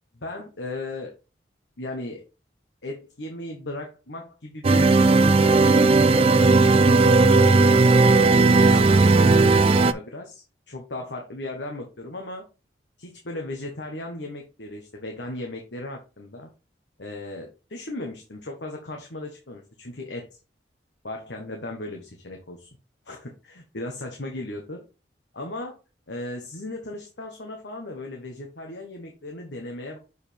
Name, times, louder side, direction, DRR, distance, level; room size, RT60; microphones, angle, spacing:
voice 1, 0.1-1.1 1.8-2.2 2.8-12.4 13.0-16.5 17.0-20.3 21.0-22.7 23.0-24.8 25.3-25.8 26.1-30.0, left 1 dB, 80° left, 2 dB, 1.3 m, -36 dB
sound 1, 4.6-9.9, right 3 dB, 30° right, 0.3 m, -16 dB
6.9 x 4.8 x 3.5 m, 0.31 s
head